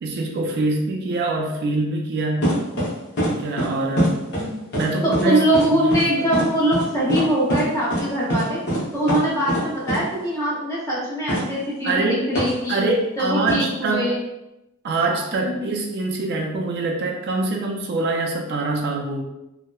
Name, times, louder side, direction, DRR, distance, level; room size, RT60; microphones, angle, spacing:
voice 1, 0.0-2.6 3.3-4.2 4.7-5.4 5.7-6.2 11.8-12.2 12.7-14.1 14.8-19.2, right 2 dB, 50° right, 1 dB, 0.3 m, -24 dB
sound 1, 2.4-2.9 3.2-3.3 3.6-3.7 4.0-4.5 4.7-4.9 5.1-5.2 5.5-5.6 5.9-6.0 6.3-6.5 6.7-6.8 7.1-7.2 7.5-7.6 7.9-8.0 8.3-8.4 8.7-8.8 9.1-9.2 9.5-9.6 9.9-10.0 11.3-11.4 12.4-12.5 13.5-13.6, equal, 50° left, 0.8 m, -22 dB
voice 2, 5.0-8.6 8.9-12.8 13.2-14.2 15.3-15.7, right 1 dB, 15° left, -6 dB, 0.8 m, -22 dB
2.8 x 2.0 x 2.2 m, 0.92 s
head